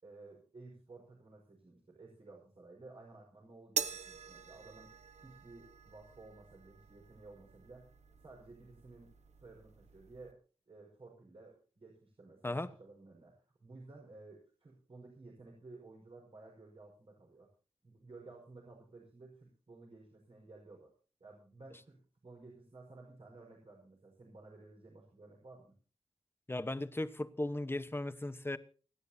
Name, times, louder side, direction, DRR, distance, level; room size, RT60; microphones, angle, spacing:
voice 1, 0.0-4.9 5.2-7.9 8.2-9.1 9.4-10.4 10.7-17.5 17.8-20.9 21.2-25.7, right 3 dB, 55° right, 5.4 m, -55 dB
sound 1, 3.8-10.3, right 6 dB, 85° right, 1.2 m, -45 dB
voice 2, 26.5-28.6, left 1 dB, 20° left, 1.1 m, -37 dB
29.0 x 10.5 x 2.8 m
wide cardioid pair, 85°, 11 cm